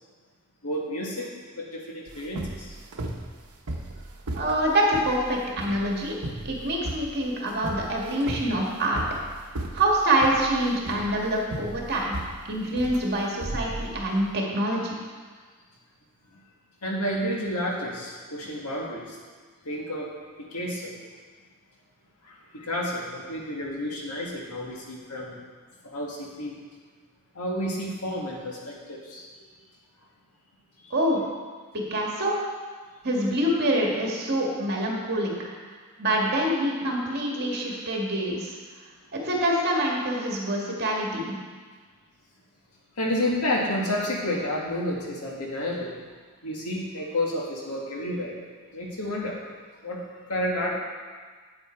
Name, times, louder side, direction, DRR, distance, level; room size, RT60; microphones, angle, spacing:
voice 1, 0.6-2.8 16.8-19.2 19.6-20.1 20.4-21.0 22.2-25.4 25.8-26.6 27.3-29.2 30.8-30.9 43.0-45.9 46.4-48.4 48.7-49.4 49.8-50.0 50.3-50.7, left 1 dB, 90° left, -2 dB, 1.9 m, -30 dB
sound 1, 2.1-14.3, right 1 dB, 75° right, 0.9 m, -36 dB
voice 2, 4.4-6.1 6.4-9.0 9.7-12.2 12.5-15.0 30.9-31.2 31.7-32.4 33.0-35.5 36.0-38.5 39.1-41.3, right 1 dB, 50° right, -2 dB, 1.8 m, -25 dB
8.9 x 7.9 x 4.5 m, 1.5 s
head